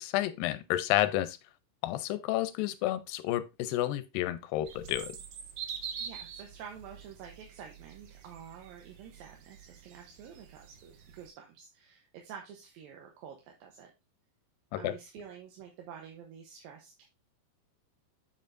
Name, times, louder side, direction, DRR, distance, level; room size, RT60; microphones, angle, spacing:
voice 1, 0.0-1.4 1.8-5.2 14.7-14.9, left 14 dB, 85° left, 2.4 m, -30 dB
sound 1, 4.7-11.3, right 7 dB, 75° right, 1.4 m, -45 dB
voice 2, 6.0-13.9 14.8-17.0, right 7 dB, 90° right, 2.8 m, -49 dB
7.6 x 6.9 x 2.6 m
omnidirectional pair, 4.0 m